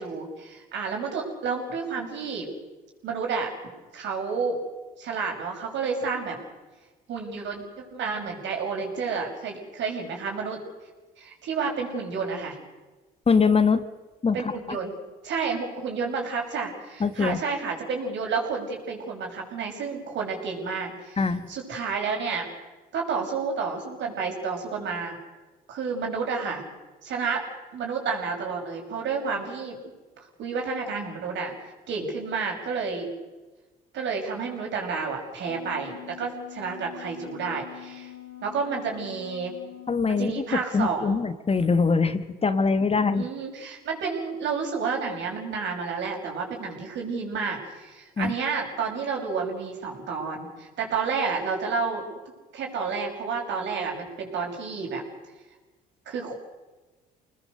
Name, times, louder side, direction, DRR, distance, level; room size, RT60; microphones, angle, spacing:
voice 1, 0.0-2.5 3.0-3.5 3.9-4.6 5.0-6.4 7.1-10.6 11.2-12.6 14.3-14.9 15.2-22.5 22.9-25.2 25.7-26.6 27.0-29.8 30.4-31.6 31.9-33.1 33.9-38.1 38.4-39.5 40.1-41.2 43.1-52.1 52.5-55.0 56.1-56.4, right 5 dB, 65° right, 1 dB, 6.2 m, -30 dB
voice 2, 13.3-13.8 14.2-14.4 14.7-14.8 17.0-17.4 21.2-21.5 39.9-40.4 40.7-43.3 48.2-48.3, left 4 dB, 30° left, 11 dB, 1.6 m, -23 dB
Wind instrument woodwind instrument, 35.2-40.4, left 14 dB, 85° left, 4.2 m, -44 dB
26.5 x 19.5 x 6.7 m, 1.2 s
hypercardioid pair, 65°, 20 cm